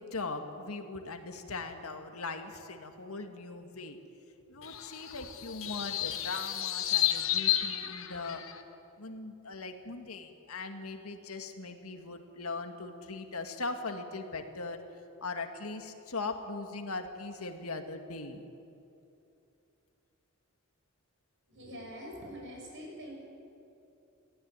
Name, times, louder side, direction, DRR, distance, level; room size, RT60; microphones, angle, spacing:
voice 1, 0.0-4.0 4.5-8.4 9.0-14.8 15.2-18.5, left 3 dB, 85° left, 6 dB, 1.9 m, -40 dB
sound 1, 4.6-8.6, left 13 dB, 65° left, 1.4 m, -32 dB
voice 2, 21.5-23.2, equal, 60° right, 0 dB, 6.6 m, -44 dB
20.5 x 15.5 x 9.7 m, 2.7 s
head